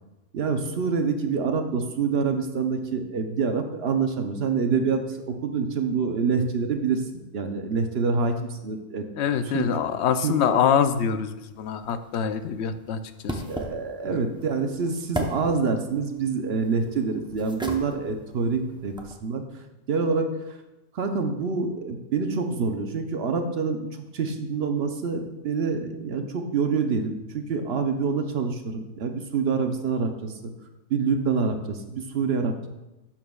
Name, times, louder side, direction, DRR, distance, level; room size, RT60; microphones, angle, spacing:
voice 1, 0.3-7.0 7.3-9.0 9.5-9.7 10.2-10.6 13.3-18.9 19.2-20.6 20.9-23.9 24.1-30.5 30.9-32.7, right 5 dB, 60° right, 5 dB, 0.9 m, -26 dB
voice 2, 9.1-13.4 14.1-14.2, left 7 dB, 70° left, 10 dB, 0.8 m, -25 dB
sound 1, 11.5-19.2, right 1 dB, 5° right, 0.5 m, -38 dB
11.0 x 7.3 x 2.3 m, 1.0 s
omnidirectional pair, 1.3 m